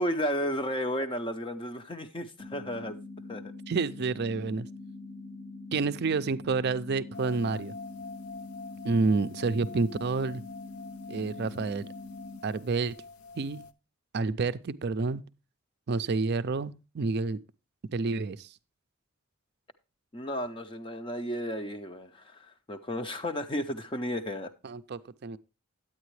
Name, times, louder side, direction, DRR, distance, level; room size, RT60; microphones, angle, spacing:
voice 1, 0.0-3.0 3.3-3.5 20.1-24.5, equal, 25° left, 0.6 m, -33 dB
sound 1, 2.4-12.4, left 3 dB, 70° left, 1.8 m, -44 dB
voice 2, 3.7-4.7 5.7-7.7 8.8-10.4 11.1-11.9 12.4-13.0 13.4-13.6 14.1-15.2 15.9-17.4 17.9-18.5 24.6-25.4, right 4 dB, 50° right, 0.4 m, -29 dB
sound 2, 7.1-13.7, left 4 dB, 85° left, 0.6 m, -46 dB
9.4 x 8.9 x 3.2 m
head